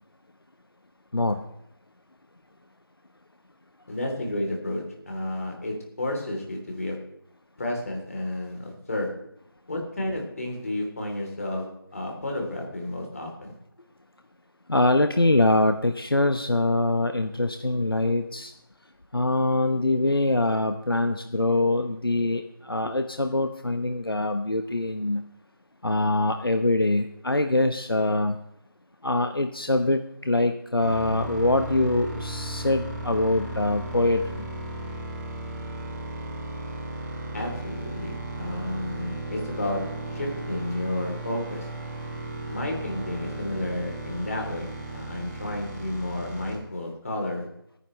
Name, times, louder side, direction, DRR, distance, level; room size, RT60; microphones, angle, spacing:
voice 1, 3.9-7.1 7.6-9.3 9.7-13.5 37.3-41.7 42.5-47.5, left 1 dB, 40° left, 1 dB, 3.3 m, -31 dB
voice 2, 14.7-18.5 19.1-25.2 25.8-28.4 29.0-34.5, left 2 dB, 80° left, 7 dB, 1.1 m, -24 dB
sound 1, 30.8-46.6, right 2 dB, 45° right, 5.0 m, -35 dB
26.5 x 9.9 x 3.2 m, 0.77 s
figure-of-eight pair, 165°, 12 cm